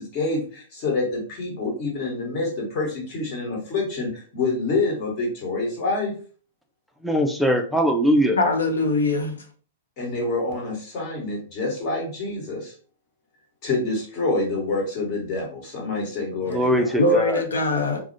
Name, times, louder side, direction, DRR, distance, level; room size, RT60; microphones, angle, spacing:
voice 1, 0.0-6.1 10.0-12.7 13.6-17.0, left 3 dB, 40° left, 1.3 m, -27 dB
voice 2, 7.0-8.4 16.5-17.4, equal, ahead, 0.4 m, -21 dB
voice 3, 8.4-9.4 17.0-18.0, left 2 dB, 80° left, 0.6 m, -22 dB
2.3 x 2.0 x 2.6 m
hypercardioid pair, 115°, 0 cm